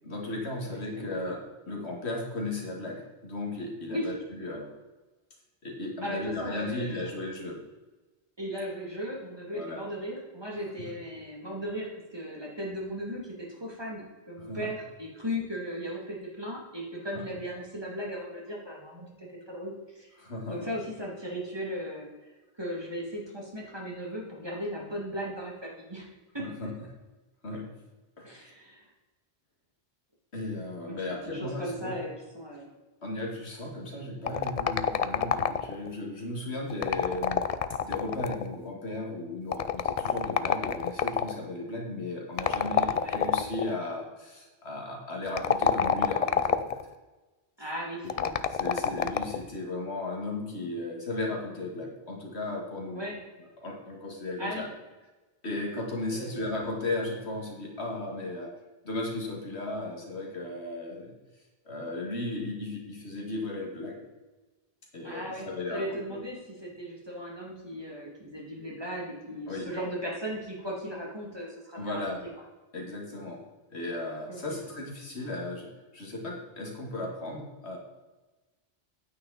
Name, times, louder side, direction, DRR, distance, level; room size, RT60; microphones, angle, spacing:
voice 1, 0.0-4.7 5.6-7.6 9.5-9.8 14.5-14.7 17.1-17.2 20.2-20.7 26.4-26.7 27.4-27.7 28.2-28.3 30.3-31.9 33.0-37.4 37.8-46.8 48.2-53.0 53.6-54.6 55.4-58.5 58.8-61.1 61.7-64.1 64.9-66.2 69.5-69.7 71.8-72.2 72.7-73.4 73.7-77.8, left 2 dB, 85° left, 0 dB, 2.3 m, -35 dB
voice 2, 0.7-1.2 3.9-4.1 6.0-7.2 8.4-20.1 20.5-22.1 22.5-26.1 26.3-26.5 28.2-28.8 30.8-32.7 42.9-43.2 47.6-48.1 52.9-53.2 54.4-54.7 56.1-56.4 65.0-72.0 74.3-74.6, equal, 25° right, -3 dB, 2.4 m, -37 dB
sound 1, 34.3-35.9 36.7-38.5 39.5-41.3 42.4-43.7 45.3-46.8 48.1-49.4, left 7 dB, 55° left, 0.4 m, -27 dB
9.4 x 8.8 x 4.1 m, 1.2 s
omnidirectional pair, 1.1 m